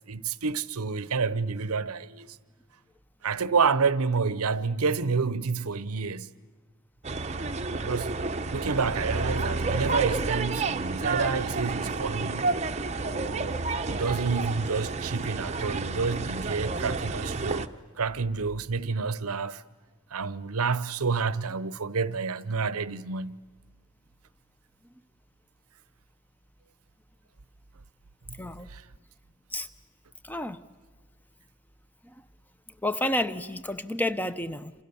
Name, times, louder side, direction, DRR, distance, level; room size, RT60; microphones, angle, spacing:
voice 1, 0.1-2.4 3.2-6.3 7.8-8.1 8.5-12.5 13.0-13.6 13.9-17.7 18.0-19.6 20.1-23.4 28.3-28.4 28.7-28.8, right 5 dB, 85° right, 0.8 m, -29 dB
sound 1, 7.0-17.7, right 3 dB, 30° right, 0.8 m, -30 dB
voice 2, 28.4-28.7 29.5-29.7 30.2-30.6 32.0-32.1 32.8-34.7, left 1 dB, 10° left, 0.7 m, -30 dB
28.5 x 27.5 x 7.0 m
head